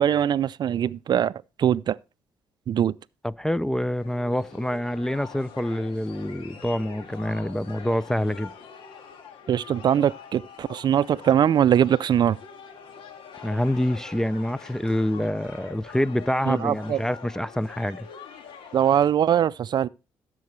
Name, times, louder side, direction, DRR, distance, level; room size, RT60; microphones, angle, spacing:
voice 1, 0.0-1.3 1.6-2.0 2.7-2.9 9.5-12.4 16.5-17.0 18.7-19.9, right 9 dB, 55° right, 0.4 m, -22 dB
voice 2, 3.2-8.5 13.4-18.1, left 1 dB, 5° left, 0.4 m, -26 dB
sound 1, 3.8-19.1, left 6 dB, 70° left, 2.0 m, -44 dB
15.0 x 7.6 x 3.1 m
supercardioid pair, 60°, 9 cm